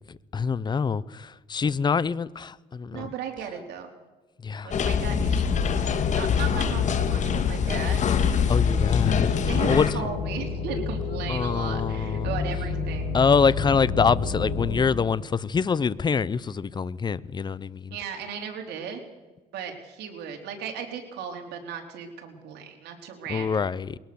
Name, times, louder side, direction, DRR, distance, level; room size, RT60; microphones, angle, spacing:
voice 1, 0.1-3.1 4.4-4.8 8.5-9.4 9.7-10.1 11.3-12.3 13.1-18.0 23.3-24.0, left 5 dB, 25° left, 0.7 m, -25 dB
voice 2, 2.9-3.9 4.6-8.5 9.5-13.1 17.9-19.0 19.5-23.5, right 7 dB, 80° right, 3.8 m, -36 dB
sound 1, 4.7-9.9, left 7 dB, 45° left, 1.8 m, -24 dB
sound 2, 8.7-14.8, left 4 dB, 70° left, 4.6 m, -30 dB
22.0 x 17.5 x 7.0 m
cardioid pair, 110°, 17 cm